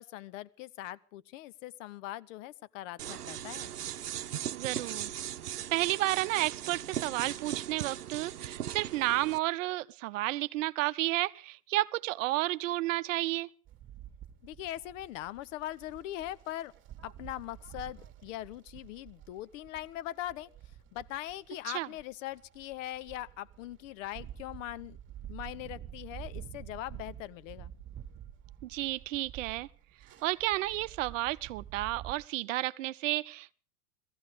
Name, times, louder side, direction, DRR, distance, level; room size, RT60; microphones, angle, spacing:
voice 1, 0.0-3.7 14.4-16.7 17.0-20.5 20.9-25.0 25.3-27.7, left 14 dB, 55° left, 0.9 m, -41 dB
sound 1, 3.0-9.4, right 10 dB, 85° right, 0.8 m, -38 dB
voice 2, 4.5-5.1 5.7-13.5 21.7-21.9 28.6-29.7 30.2-33.5, right 17 dB, 55° right, 0.7 m, -31 dB
sound 2, 13.6-32.1, right 11 dB, 25° right, 1.7 m, -49 dB
19.0 x 15.0 x 5.1 m
hypercardioid pair, 90°, 45 cm